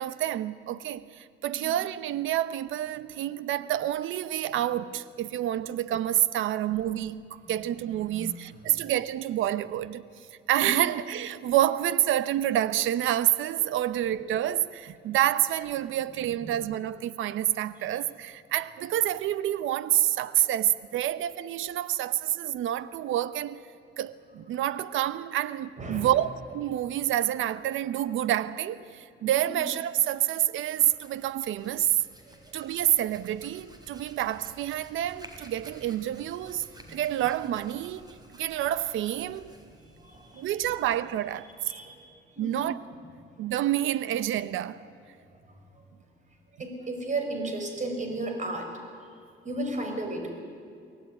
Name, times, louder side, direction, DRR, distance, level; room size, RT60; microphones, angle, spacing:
voice 1, 0.0-10.1 10.5-23.6 24.0-32.0 32.5-38.1 38.4-39.5 40.3-41.5 42.4-42.8 43.4-44.8, right 12 dB, 85° right, 0.8 m, -28 dB
voice 2, 7.9-8.5 10.6-10.7 16.4-16.5 17.8-17.9 25.8-26.1 29.4-29.6 32.3-32.5 36.9-37.0 39.8-40.5 41.7-42.7 43.1-43.2 45.3-45.8 46.6-48.7 49.4-50.3, right 2 dB, 40° right, 5.6 m, -35 dB
Hands, 30.6-42.0, right 1 dB, 20° right, 4.0 m, -53 dB
23.5 x 17.0 x 9.5 m
cardioid pair, 90°, 20 cm